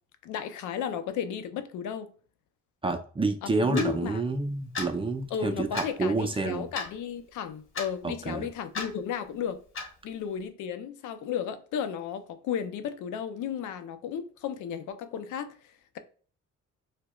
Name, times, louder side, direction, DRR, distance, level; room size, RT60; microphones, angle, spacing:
voice 1, 0.2-2.1 3.4-4.2 5.3-9.6 10.0-16.0, left 8 dB, 80° left, 0.5 m, -34 dB
voice 2, 2.8-6.7 8.0-8.5, right 3 dB, 20° right, 0.5 m, -29 dB
Clock, 3.7-3.9 4.7-4.9 5.7-5.9 6.7-6.9 7.7-7.9 8.7-8.9 9.7-9.9, left 4 dB, 45° left, 1.2 m, -33 dB
4.7 x 2.1 x 2.2 m
cardioid pair, 90°, 30 cm